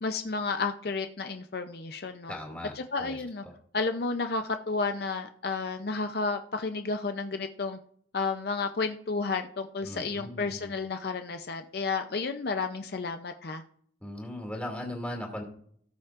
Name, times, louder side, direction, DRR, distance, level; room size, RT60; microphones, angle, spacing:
voice 1, 0.0-2.3 2.8-3.4 3.7-7.8 8.1-13.6, left 4 dB, 55° left, 7 dB, 0.6 m, -32 dB
voice 2, 2.3-2.7 3.0-3.2 9.8-10.7 14.0-15.4, left 1 dB, 5° left, 1 dB, 2.4 m, -38 dB
18.0 x 7.1 x 2.5 m, 0.63 s
head